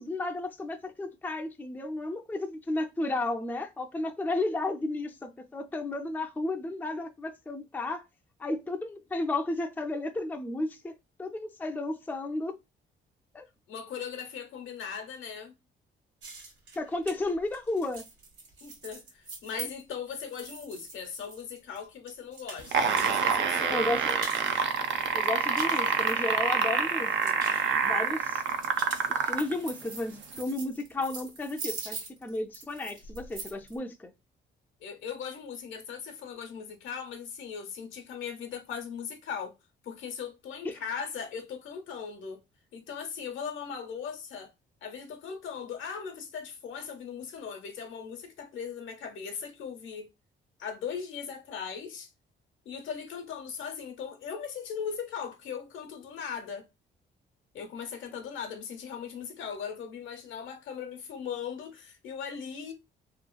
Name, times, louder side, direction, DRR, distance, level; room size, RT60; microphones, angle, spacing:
voice 1, 0.0-8.0 8.4-10.9 11.2-12.6 13.3-13.5 16.8-18.0 23.6-24.2 25.1-27.3 27.8-28.4 29.1-34.1 40.6-40.8, left 2 dB, 10° left, 0.4 m, -33 dB
voice 2, 13.7-15.5 18.6-23.8 27.6-28.0 34.8-39.5 39.8-42.4 42.7-44.5 44.8-50.1 50.6-52.1 52.6-56.7 57.5-62.7, left 7 dB, 75° left, 0.8 m, -39 dB
sound 1, 16.2-23.3 23.6-24.6 25.0-26.7 27.0-27.6 28.4-33.7, right 3 dB, 85° right, 1.4 m, -43 dB
sound 2, 22.6-29.5 30.4-30.5, right 6 dB, 65° right, 0.5 m, -26 dB
2.9 x 2.4 x 2.2 m
cardioid pair, 90°, 20 cm